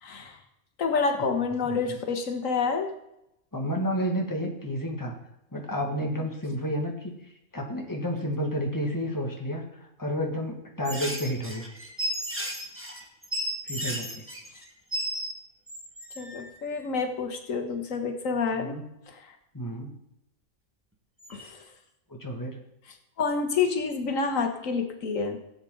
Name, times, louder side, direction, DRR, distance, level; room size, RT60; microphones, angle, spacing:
voice 1, 0.0-0.4 0.8-2.9 16.2-19.2 21.3-21.6 23.2-25.4, left 5 dB, 90° left, 5 dB, 1.7 m, -28 dB
voice 2, 1.6-2.0 3.5-5.2 5.5-7.1 7.5-9.6 10.0-11.7 13.6-14.2 18.6-18.8 19.5-19.9 22.1-22.6, equal, 15° left, 0 dB, 1.9 m, -31 dB
sound 1, 10.8-15.3 15.7-16.5 21.2-21.5, equal, 10° right, 1.6 m, -34 dB
17.0 x 8.0 x 3.9 m, 0.83 s
omnidirectional pair, 1.3 m